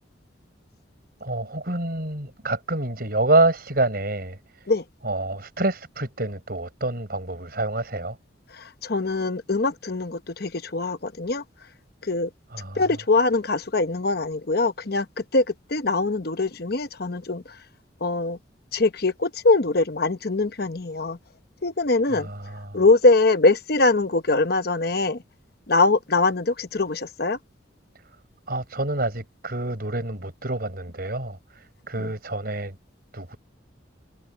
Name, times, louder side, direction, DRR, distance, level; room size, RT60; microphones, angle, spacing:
voice 1, 1.2-4.4 5.0-8.2 12.5-12.8 22.1-22.8 28.5-32.7 33.1-33.4, right 2 dB, 50° right, 5.6 m, -27 dB
voice 2, 8.5-11.4 12.0-12.3 12.7-15.1 15.3-17.4 18.0-18.4 18.7-21.2 21.6-22.3 22.7-25.2 25.7-27.4 32.0-32.1, left 3 dB, 55° left, 1.0 m, -22 dB
head